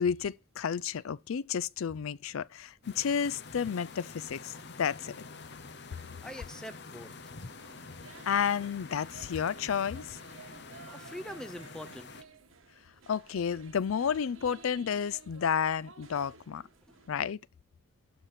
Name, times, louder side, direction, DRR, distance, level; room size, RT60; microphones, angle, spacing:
voice 1, 0.0-4.5 4.8-5.1 8.3-10.2 13.1-16.6 17.1-17.4, left 7 dB, 80° left, 0.4 m, -31 dB
sound 1, 2.8-12.2, left 4 dB, 55° left, 0.8 m, -47 dB
voice 2, 6.2-7.1 10.9-12.1 16.9-17.0, equal, 5° left, 0.6 m, -43 dB
sound 2, 7.5-17.2, right 5 dB, 75° right, 1.5 m, -55 dB
12.0 x 4.7 x 5.8 m
head